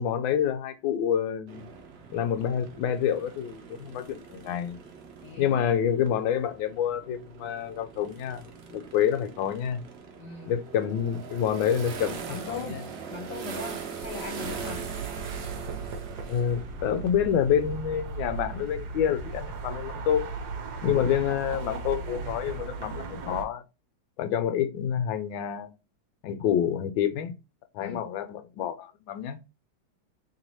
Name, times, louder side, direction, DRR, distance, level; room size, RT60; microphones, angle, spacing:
voice 1, 0.0-1.7 2.1-4.8 5.4-9.8 10.5-12.8 16.3-20.3 20.8-23.6 24.2-25.7 26.2-27.3 27.7-29.4, left 9 dB, 90° left, 1.4 m, -28 dB
sound 1, 1.5-17.8, right 6 dB, 85° right, 0.5 m, -42 dB
voice 2, 5.2-5.8 10.2-10.5 12.3-12.8 13.1-14.9 27.8-28.0, left 4 dB, 65° left, 1.4 m, -39 dB
sound 2, 14.4-23.4, right 4 dB, 65° right, 1.2 m, -37 dB
3.3 x 3.0 x 4.0 m
omnidirectional pair, 2.1 m